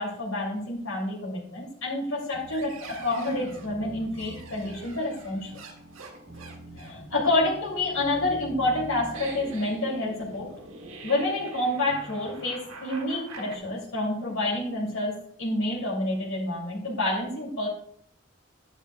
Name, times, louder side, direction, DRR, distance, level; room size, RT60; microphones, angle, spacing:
voice 1, 0.0-5.6 6.7-10.5 11.0-17.7, left 2 dB, 90° left, -4 dB, 2.9 m, -28 dB
sound 1, 2.3-13.6, right 2 dB, 90° right, 1.6 m, -43 dB
10.5 x 9.8 x 2.4 m, 0.66 s
head